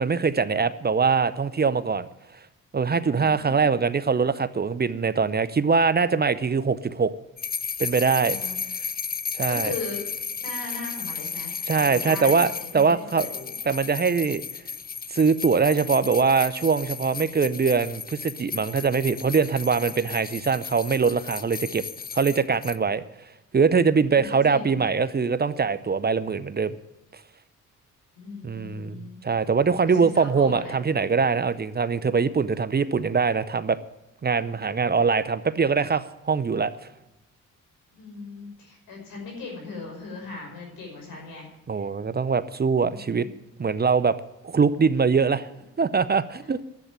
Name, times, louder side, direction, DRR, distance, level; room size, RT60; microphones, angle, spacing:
voice 1, 0.0-2.1 2.7-7.1 7.8-8.4 9.3-9.7 11.7-13.3 13.7-14.4 15.1-21.8 22.1-23.0 23.5-26.8 28.4-33.8 34.2-36.7 41.7-43.3 43.6-44.2 44.4-45.5 45.8-46.6, right 5 dB, 30° right, 14 dB, 0.7 m, -22 dB
sound 1, 7.4-22.8, left 6 dB, 25° left, 0.5 m, -34 dB
voice 2, 8.2-8.6 9.5-10.0 10.4-13.5 24.1-24.8 28.2-29.2 29.8-30.7 37.9-41.5 41.8-41.9 42.9-43.4, left 3 dB, 85° left, 0 dB, 5.7 m, -38 dB
11.0 x 8.1 x 8.9 m, 0.99 s
cardioid pair, 70°, 34 cm